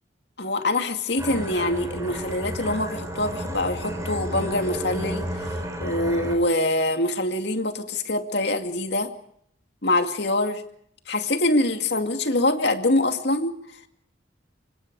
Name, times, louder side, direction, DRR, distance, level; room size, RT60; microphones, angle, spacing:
voice 1, 0.4-5.5 5.8-9.1 9.8-10.6 11.1-13.6, left 2 dB, 60° left, 6 dB, 2.4 m, -24 dB
sound 1, 1.2-6.4, right 1 dB, 15° right, 5.1 m, -32 dB
26.0 x 24.5 x 4.8 m, 0.69 s
head